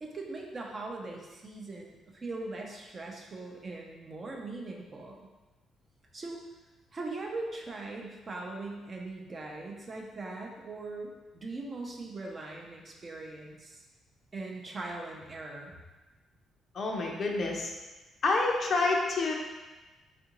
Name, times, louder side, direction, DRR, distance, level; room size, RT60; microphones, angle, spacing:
voice 1, 0.0-5.3 6.1-6.4 6.9-13.8 14.3-15.8, right 2 dB, 35° right, 0 dB, 0.6 m, -40 dB
voice 2, 16.7-17.7 18.2-19.3, left 3 dB, 50° left, 1 dB, 0.5 m, -28 dB
3.6 x 2.5 x 2.9 m, 1.2 s
cardioid pair, 90°, 0 cm